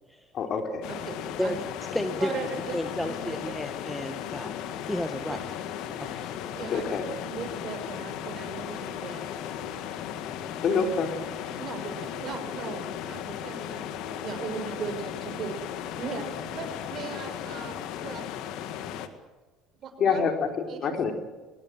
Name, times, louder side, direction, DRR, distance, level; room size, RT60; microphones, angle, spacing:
voice 1, 0.3-0.9 6.7-7.1 10.6-11.2 20.0-21.1, left 5 dB, 50° left, 5 dB, 3.8 m, -26 dB
sound 1, 0.8-19.1, left 9 dB, 65° left, 2.0 m, -36 dB
voice 2, 1.1-1.6 2.2-3.4 5.2-5.4 6.5-6.9 7.2-9.3 11.6-18.2 19.8-20.2 20.7-21.0, right 5 dB, 50° right, 7 dB, 6.1 m, -38 dB
voice 3, 1.9-2.3 2.7-4.6 4.8-5.6 6.0-6.3, left 1 dB, 5° left, 7 dB, 1.9 m, -32 dB
23.0 x 20.0 x 7.7 m, 1.3 s
hypercardioid pair, 75°, 0 cm